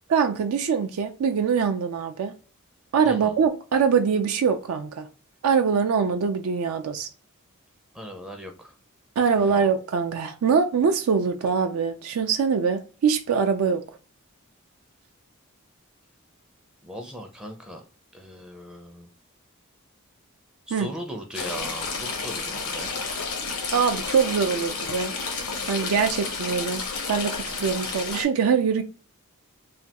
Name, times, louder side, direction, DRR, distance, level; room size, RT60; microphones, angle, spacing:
voice 1, 0.1-2.3 2.9-5.1 5.4-7.1 9.2-13.8 20.7-20.9 23.7-25.1 25.7-26.8 27.1-28.8, right 6 dB, 75° right, 0.4 m, -23 dB
voice 2, 7.9-8.7 9.4-9.6 16.8-17.8 18.1-19.1 20.7-23.0, equal, 5° right, 0.4 m, -39 dB
Stream / Trickle dribble, 21.3-28.2, left 4 dB, 85° left, 0.9 m, -31 dB
3.3 x 2.2 x 2.8 m
head